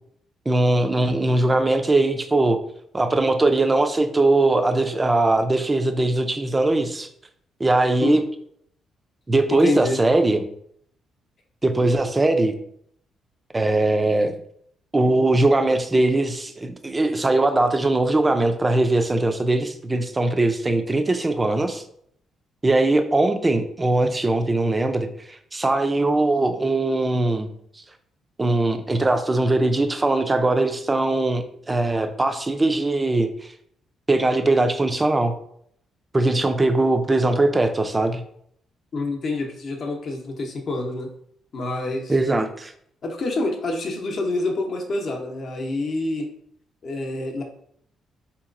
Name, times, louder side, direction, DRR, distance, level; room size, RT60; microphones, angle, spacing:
voice 1, 0.5-2.6 2.9-7.1 7.6-8.2 9.3-10.4 11.6-12.6 13.5-14.4 14.9-21.8 22.6-27.5 28.4-33.5 34.1-35.3 36.1-38.2 42.1-42.7, right 2 dB, 20° right, 7 dB, 0.4 m, -20 dB
voice 2, 9.5-10.0 38.9-41.1 41.5-42.1 43.0-46.3 46.8-47.4, left 2 dB, 55° left, 3 dB, 0.7 m, -27 dB
3.8 x 2.9 x 2.5 m, 0.67 s
cardioid pair, 90°, 0 cm